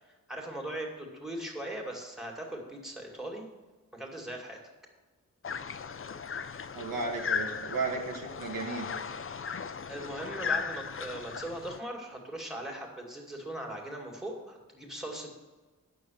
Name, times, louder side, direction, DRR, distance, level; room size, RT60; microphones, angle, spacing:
voice 1, 0.0-3.4 3.9-4.6 9.9-15.3, right 1 dB, ahead, 0 dB, 2.2 m, -39 dB
sound 1, 5.4-11.8, left 6 dB, 40° left, 0.5 m, -36 dB
voice 2, 6.7-8.9, right 3 dB, 75° right, 1 dB, 1.8 m, -34 dB
9.0 x 6.4 x 7.6 m, 1.2 s
wide cardioid pair, 95°, 34 cm